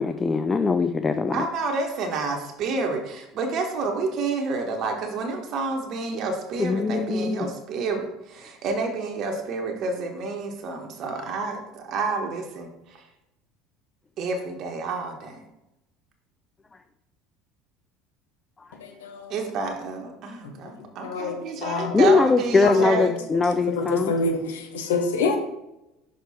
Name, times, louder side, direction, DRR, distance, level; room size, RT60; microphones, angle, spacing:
voice 1, 0.0-1.4 6.6-7.5 18.6-18.7 21.9-24.1, left 4 dB, 25° left, 9 dB, 0.4 m, -21 dB
voice 2, 1.3-13.0 14.2-15.4 19.3-23.1, right 4 dB, 55° right, 3 dB, 1.1 m, -29 dB
voice 3, 18.7-19.4 20.4-22.0 22.6-25.4, left 4 dB, 80° left, 4 dB, 0.9 m, -28 dB
6.4 x 4.7 x 4.1 m, 0.90 s
hypercardioid pair, 70°, 0 cm